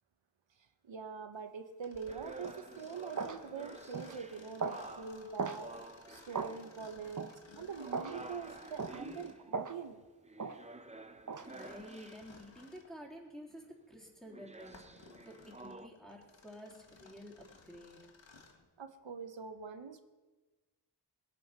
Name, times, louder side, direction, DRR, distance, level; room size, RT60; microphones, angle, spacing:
voice 1, 0.8-5.7 6.1-10.0 18.8-20.0, right 5 dB, 85° right, 8 dB, 1.1 m, -44 dB
Mechanisms, 1.8-9.5 11.3-12.9 13.5-13.6 14.3-18.7, left 4 dB, 85° left, 1.7 m, -58 dB
sound 1, 2.1-7.2 7.8-12.5 14.3-15.9, right 2 dB, 15° right, 0.7 m, -51 dB
sound 2, 2.4-2.6 3.2-3.4 3.9-4.2 4.6-4.8 5.4-5.6 6.3-6.6 7.2-7.3 7.9-8.2 8.8-9.0 9.5-9.8 10.4-10.6 11.3-11.5, right 4 dB, 45° right, 1.0 m, -37 dB
voice 2, 11.4-18.0 18.7-18.8, equal, ahead, -1 dB, 3.5 m, -51 dB
21.0 x 7.9 x 5.8 m, 1.2 s
wide cardioid pair, 70°, 44 cm